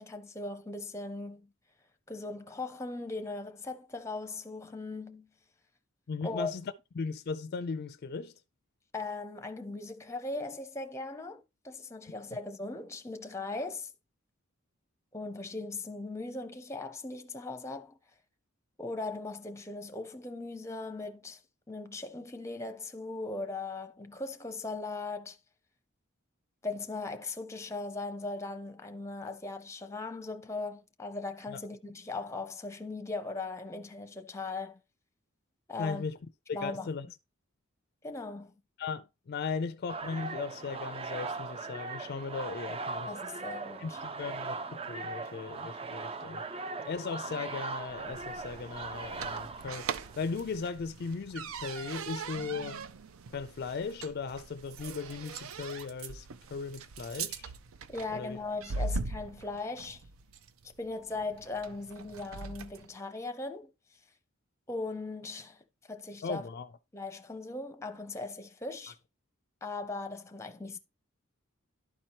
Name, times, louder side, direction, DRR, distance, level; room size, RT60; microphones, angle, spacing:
voice 1, 0.0-1.5 2.1-5.3 6.2-6.5 8.9-13.9 15.1-18.0 18.8-21.4 21.7-25.4 26.6-34.8 35.7-36.0 36.5-36.9 38.0-38.5 43.1-44.0 57.9-60.0 60.8-63.7 64.7-66.5 66.9-69.0 69.6-70.8, left 3 dB, 15° left, 0.7 m, -39 dB
voice 2, 6.1-8.3 31.5-31.6 35.8-36.2 36.5-37.1 38.8-43.1 43.8-46.4 46.8-52.8 53.3-57.5 58.1-58.4 58.8-58.9 66.2-66.7, left 5 dB, 50° left, 0.4 m, -37 dB
sound 1, 39.9-50.4, right 3 dB, 25° right, 0.4 m, -39 dB
sound 2, 47.8-62.9, right 4 dB, 75° right, 0.5 m, -41 dB
11.5 x 4.4 x 2.9 m
head